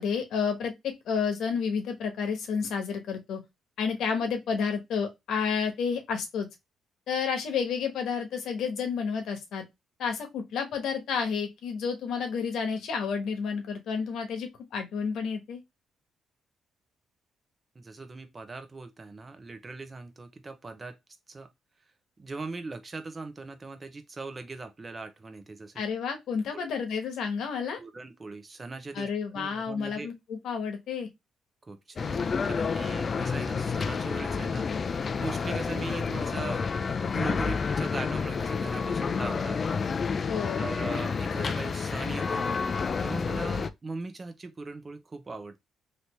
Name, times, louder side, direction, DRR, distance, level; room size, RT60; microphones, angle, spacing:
voice 1, 0.0-3.4 3.8-6.5 7.1-9.6 10.0-15.6 25.7-27.8 28.9-31.1 40.3-40.7, left 6 dB, 75° left, 1.1 m, -30 dB
voice 2, 17.7-21.0 21.3-21.5 22.2-25.7 26.5-26.6 27.8-29.1 29.3-30.1 31.7-34.7 34.9-36.6 37.1-39.8 40.5-45.6, right 3 dB, 30° right, 0.8 m, -40 dB
sound 1, 32.0-43.7, left 5 dB, 40° left, 0.4 m, -29 dB
3.2 x 2.8 x 2.9 m
cardioid pair, 90°, 0 cm